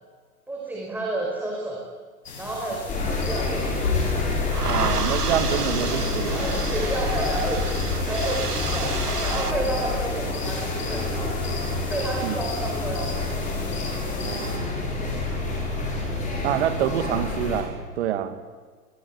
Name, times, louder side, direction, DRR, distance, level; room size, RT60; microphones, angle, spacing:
voice 1, 0.5-1.8 2.4-3.7 6.3-7.8 8.0-8.9 9.2-11.4 11.8-13.1 16.2-16.6, right 2 dB, 5° right, -3 dB, 5.2 m, -31 dB
sound 1, 2.2-14.6, left 4 dB, 55° left, 7.8 m, -35 dB
sound 2, 2.9-17.6, left 3 dB, 15° left, 7.3 m, -28 dB
sound 3, 3.4-9.5, right 5 dB, 85° right, 1.2 m, -32 dB
voice 2, 4.6-6.5 12.2-12.4 14.2-14.7 16.4-18.3, right 10 dB, 45° right, 10 dB, 2.5 m, -27 dB
26.5 x 22.0 x 8.7 m, 1.5 s
figure-of-eight pair, 110°, 46 cm